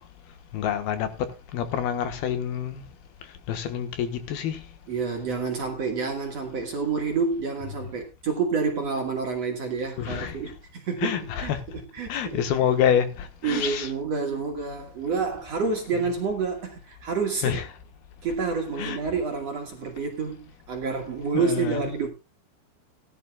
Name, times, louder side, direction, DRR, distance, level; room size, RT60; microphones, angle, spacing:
voice 1, 0.5-2.8 3.5-4.6 7.6-7.7 10.0-10.4 11.0-11.6 12.1-13.9 15.9-16.1 17.4-17.7 18.8-19.0 21.3-21.9, left 9 dB, 75° left, 3.1 m, -27 dB
voice 2, 4.9-12.4 13.4-17.6 18.2-22.1, right 5 dB, 55° right, 2.1 m, -28 dB
19.0 x 11.5 x 2.3 m
omnidirectional pair, 4.7 m